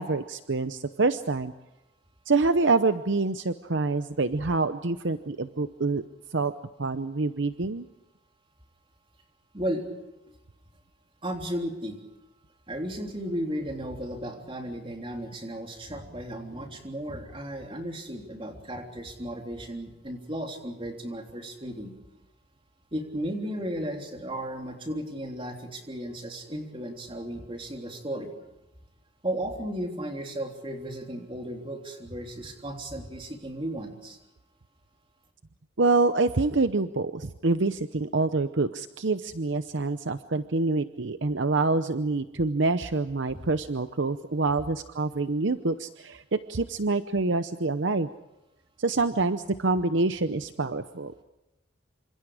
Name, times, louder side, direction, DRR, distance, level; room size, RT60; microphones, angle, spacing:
voice 1, 0.0-1.5 2.3-6.0 6.3-6.5 6.8-7.8 35.8-46.2 46.5-48.1 48.8-51.2, right 3 dB, 60° right, 11 dB, 0.8 m, -26 dB
voice 2, 11.2-12.0 12.7-21.9 22.9-28.3 29.2-34.2, right 1 dB, 25° right, 3 dB, 3.4 m, -35 dB
28.0 x 26.0 x 5.0 m, 0.97 s
head